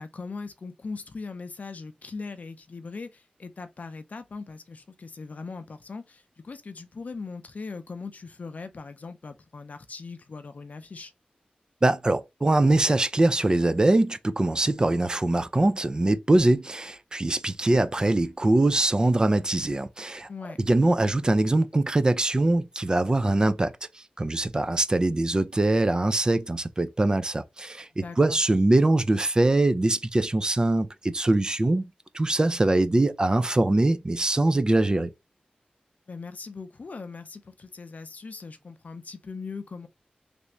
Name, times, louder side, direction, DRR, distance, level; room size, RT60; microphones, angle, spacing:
voice 1, 0.0-11.1 20.3-20.6 28.0-28.4 36.1-39.9, left 4 dB, 60° left, 0.5 m, -40 dB
voice 2, 11.8-20.3 20.6-31.8 32.1-35.1, right 2 dB, 30° right, 0.4 m, -23 dB
3.3 x 2.5 x 3.0 m
wide cardioid pair, 80°, 3 cm